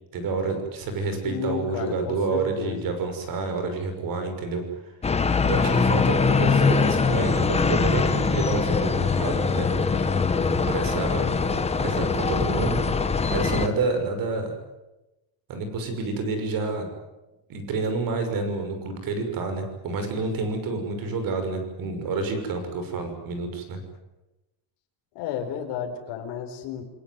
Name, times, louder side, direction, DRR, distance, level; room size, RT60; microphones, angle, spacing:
voice 1, 0.1-4.6 5.2-9.7 10.7-11.2 11.8-12.8 13.3-14.5 15.5-16.9 17.5-23.8, right 3 dB, 50° right, 7 dB, 6.2 m, -29 dB
voice 2, 1.2-3.0 25.1-26.8, left 9 dB, 65° left, 1 dB, 4.4 m, -32 dB
sound 1, 5.0-13.7, left 4 dB, 15° left, 1.5 m, -22 dB
29.0 x 20.0 x 9.5 m, 1.0 s
cardioid pair, 170°, 45 cm